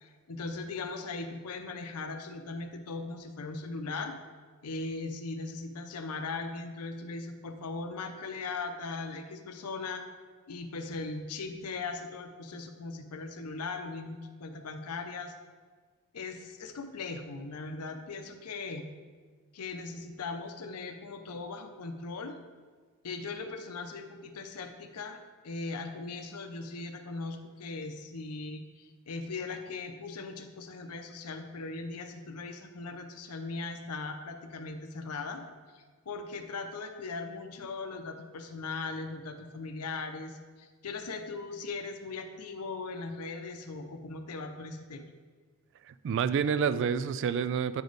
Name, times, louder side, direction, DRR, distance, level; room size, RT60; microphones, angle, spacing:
voice 1, 0.0-4.1 4.6-10.1 10.5-15.3 16.1-18.9 19.5-22.4 23.0-25.2 25.4-35.4 35.7-45.0, left 3 dB, 85° left, 7 dB, 0.7 m, -39 dB
voice 2, 45.9-47.8, right 7 dB, 55° right, 14 dB, 0.3 m, -28 dB
8.8 x 5.1 x 3.9 m, 1.5 s
head